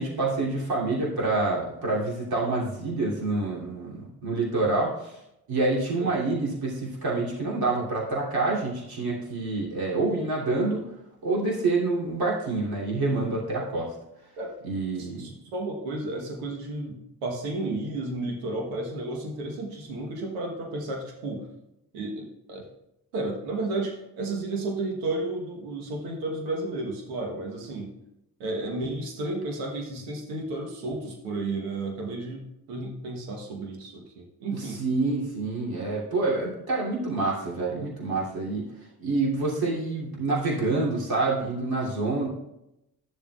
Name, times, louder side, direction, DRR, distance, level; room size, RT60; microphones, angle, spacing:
voice 1, 0.0-5.2 5.5-10.8 11.2-13.9 14.6-15.3 34.5-38.7 39.0-42.3, right 3 dB, 60° right, -5 dB, 3.0 m, -27 dB
voice 2, 15.0-21.5 21.9-22.6 23.1-27.9 28.4-34.8, right 2 dB, 90° right, 1 dB, 1.3 m, -32 dB
12.5 x 7.1 x 2.4 m, 0.85 s
hypercardioid pair, 45°, 42 cm